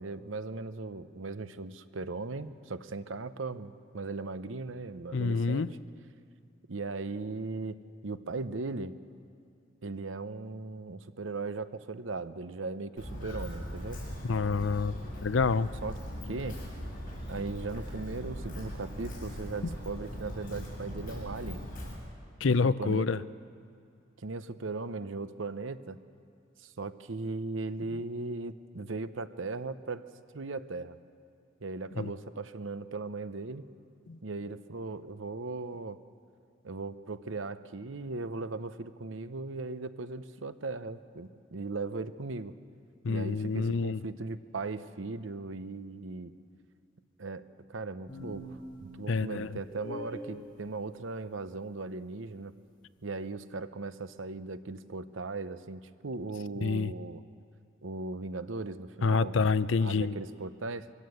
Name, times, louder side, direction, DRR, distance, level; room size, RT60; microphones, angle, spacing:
voice 1, 0.0-5.6 6.7-9.0 9.8-14.0 15.6-16.0 16.3-16.6 17.3-21.6 22.5-23.1 24.2-26.0 26.6-30.0 30.3-31.0 31.6-33.7 34.2-36.0 36.6-42.5 43.1-46.3 47.2-52.5 53.0-57.2 57.8-59.3 59.8-60.9, right 3 dB, 80° right, 13 dB, 0.8 m, -38 dB
voice 2, 5.1-5.7 14.2-14.9 15.2-15.7 19.6-19.7 22.4-23.2 32.0-32.1 34.1-34.2 43.0-44.0 49.1-49.6 56.6-56.9 59.0-60.2, left 4 dB, 75° left, 16 dB, 0.6 m, -27 dB
Walk footsteps, 13.0-21.9, equal, 45° left, 6.8 m, -40 dB
sound 1, 48.1-50.3, equal, 25° left, 4.5 m, -43 dB
23.5 x 16.5 x 7.9 m, 2.4 s
head